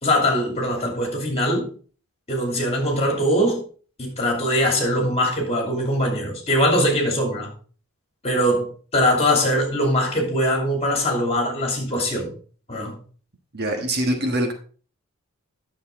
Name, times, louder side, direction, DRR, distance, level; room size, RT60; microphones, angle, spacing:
voice 1, 0.0-1.7 2.3-3.6 4.0-7.5 8.2-12.3 12.7-13.0, equal, 30° left, 2.8 m, -22 dB
voice 2, 13.5-14.5, right 1 dB, 50° right, 1.4 m, -23 dB
10.5 x 6.7 x 3.7 m
head